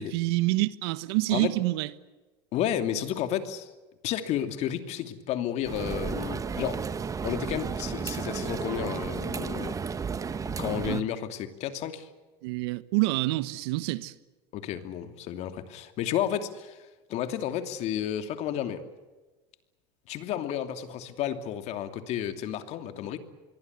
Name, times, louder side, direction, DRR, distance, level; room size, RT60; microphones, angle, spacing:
voice 1, 0.0-1.9 10.9-11.0 12.4-14.1, right 20 dB, 80° right, 1.3 m, -27 dB
voice 2, 2.5-3.7 4.0-6.8 7.2-9.7 10.4-12.1 14.5-16.8 17.1-18.8 20.1-23.2, left 10 dB, 55° left, 2.8 m, -32 dB
sound 1, 5.6-11.0, right 6 dB, 25° right, 1.3 m, -33 dB
26.0 x 22.5 x 8.3 m
supercardioid pair, 105°, 13 cm